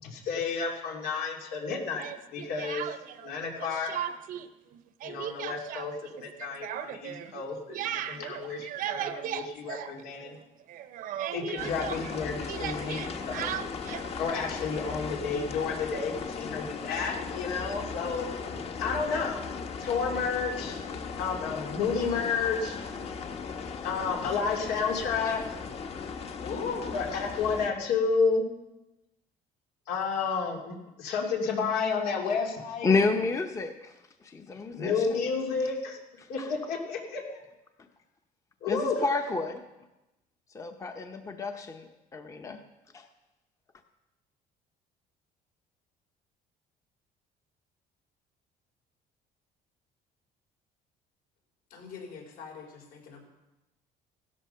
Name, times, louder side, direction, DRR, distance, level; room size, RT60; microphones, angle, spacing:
voice 1, 0.0-2.9 3.2-3.9 5.0-5.9 6.2-10.4 11.3-13.5 14.2-18.3 18.8-19.4 19.8-20.8 21.2-22.8 23.8-25.4 26.9-28.5 29.9-32.9 34.7-36.0 36.3-37.4 38.6-39.0, left 5 dB, 85° left, 0 dB, 2.9 m, -31 dB
Speech, 2.0-3.3 3.6-4.5 4.7-10.4 10.7-14.1, right 10 dB, 60° right, 0.8 m, -37 dB
sound 1, 11.6-27.7, left 5 dB, 40° left, 1.2 m, -37 dB
voice 2, 26.4-27.2 51.7-53.2, left 5 dB, 70° left, 2 dB, 4.5 m, -39 dB
voice 3, 32.8-33.9 34.2-35.2 36.4-36.5 38.7-39.6 40.5-41.9 42.1-42.6 42.9-43.1, left 3 dB, 20° left, 6 dB, 0.8 m, -30 dB
16.0 x 12.5 x 5.7 m, 0.99 s
cardioid pair, 160°, 16 cm